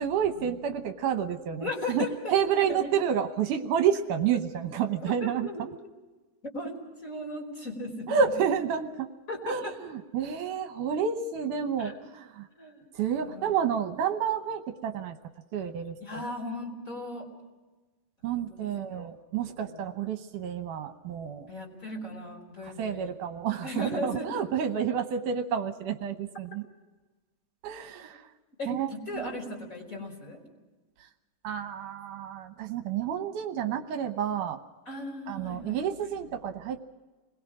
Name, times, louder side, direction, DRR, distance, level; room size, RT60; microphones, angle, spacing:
voice 1, 0.0-5.7 8.1-9.1 9.4-12.5 12.9-15.2 15.5-16.3 18.2-21.5 22.6-26.6 27.6-28.2 28.7-29.2 31.4-34.6 35.3-36.8, right 8 dB, 75° right, 6 dB, 2.5 m, -30 dB
voice 2, 1.6-2.9 5.0-5.6 6.5-8.4 9.3-9.7 11.8-11.9 12.5-12.8 13.2-13.5 16.0-17.3 18.2-19.1 19.5-19.9 21.5-23.2 23.6-24.4 28.0-28.1 28.6-30.4 34.8-35.8, left 1 dB, 25° left, 1 dB, 4.9 m, -37 dB
29.5 x 21.5 x 4.9 m, 1.2 s
omnidirectional pair, 3.8 m